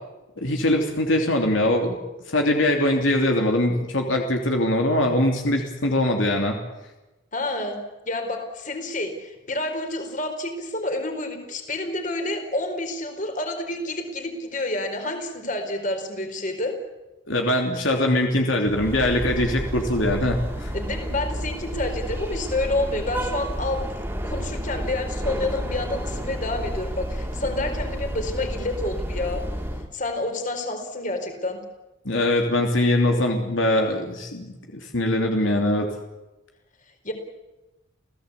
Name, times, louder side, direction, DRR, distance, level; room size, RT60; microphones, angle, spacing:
voice 1, 0.4-2.0 2.3-6.6 17.3-20.7 32.0-35.9, left 1 dB, 75° left, 2 dB, 3.2 m, -22 dB
voice 2, 7.3-7.8 8.0-16.7 20.7-23.8 24.2-29.4 29.9-31.6 37.0-37.1, left 2 dB, 40° left, 6 dB, 4.5 m, -29 dB
sound 1, 18.7-29.9, equal, 10° right, 2.8 m, -30 dB
30.0 x 17.0 x 8.4 m, 1.1 s
head